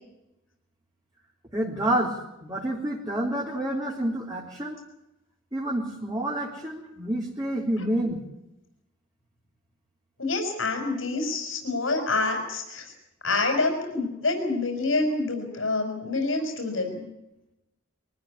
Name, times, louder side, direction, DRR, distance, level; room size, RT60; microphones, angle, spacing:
voice 1, 1.5-4.8 5.5-8.2, right 1 dB, 20° right, -3 dB, 3.8 m, -28 dB
voice 2, 10.2-12.9 13.2-17.0, left 3 dB, 80° left, 4 dB, 5.8 m, -27 dB
24.0 x 14.5 x 9.8 m, 0.91 s
head